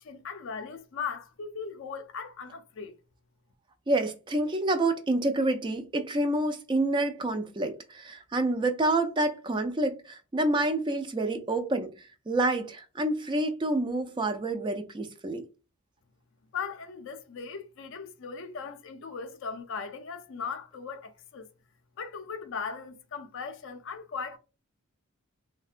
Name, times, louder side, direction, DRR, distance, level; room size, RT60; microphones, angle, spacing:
voice 1, 0.0-3.0 16.5-21.5 22.0-24.4, left 5 dB, 60° left, 0.4 m, -38 dB
voice 2, 3.9-15.4, right 2 dB, 20° right, 0.3 m, -28 dB
3.5 x 2.1 x 2.4 m
head